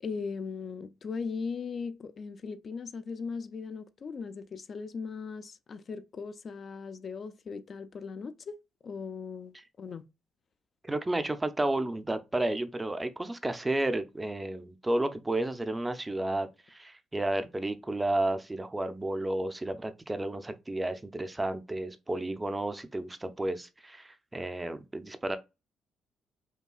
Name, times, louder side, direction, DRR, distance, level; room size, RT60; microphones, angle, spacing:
voice 1, 0.0-8.6 8.8-10.0, left 5 dB, 50° left, 0.4 m, -38 dB
voice 2, 10.8-25.4, right 1 dB, 15° right, 0.5 m, -32 dB
5.5 x 2.2 x 2.3 m
cardioid pair, 90°, 0 cm